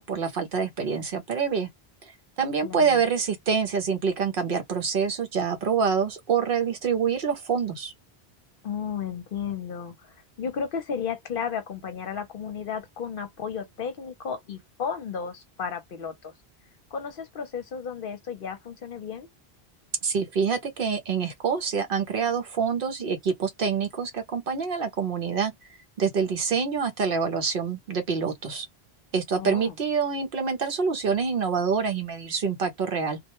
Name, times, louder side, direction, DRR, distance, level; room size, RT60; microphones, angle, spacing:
voice 1, 0.0-1.7 2.1-7.9 20.0-25.5 26.0-28.7 29.1-33.2, right 6 dB, 60° right, 0.8 m, -26 dB
voice 2, 2.6-3.0 8.6-16.3 16.9-19.3 29.4-29.7, left 6 dB, 60° left, 0.8 m, -33 dB
2.2 x 2.1 x 2.9 m
omnidirectional pair, 1.1 m